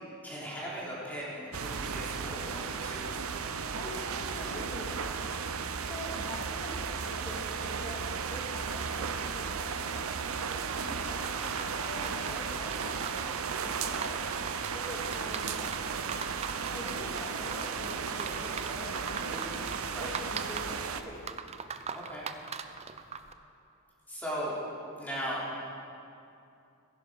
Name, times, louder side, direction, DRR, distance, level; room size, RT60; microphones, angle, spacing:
voice 1, 0.2-3.2 16.7-16.8 19.9-20.1 21.9-22.3 24.1-24.5 25.0-25.4, equal, 10° left, -7 dB, 3.5 m, -38 dB
sound 1, 1.5-21.0, right 5 dB, 70° right, 0.7 m, -35 dB
voice 2, 3.7-5.3 5.8-10.1 10.8-13.3 13.6-14.3 14.7-15.7 16.7-19.6 20.0-21.4, left 1 dB, 25° left, -2 dB, 2.4 m, -44 dB
sound 2, 10.5-23.3, right 6 dB, 30° right, 0.5 m, -42 dB
15.5 x 11.0 x 5.2 m, 2.6 s
head